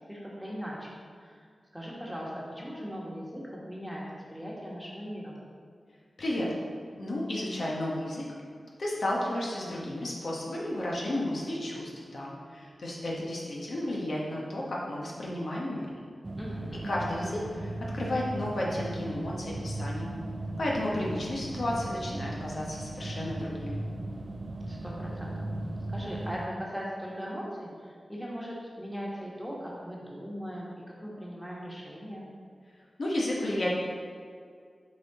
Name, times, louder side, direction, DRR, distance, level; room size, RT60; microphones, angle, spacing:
voice 1, 0.1-1.4 1.7-5.4 16.4-16.9 24.7-25.4 25.9-30.7 31.0-32.3, equal, ahead, -5 dB, 1.5 m, -39 dB
voice 2, 6.2-6.5 7.0-8.2 8.8-15.9 16.8-20.1 20.6-23.8 33.0-33.8, left 1 dB, 70° left, -4 dB, 1.2 m, -32 dB
sound 1, 16.2-26.5, right 1 dB, 35° right, 0.3 m, -37 dB
6.2 x 4.4 x 4.1 m, 2.2 s
cardioid pair, 60°, 0 cm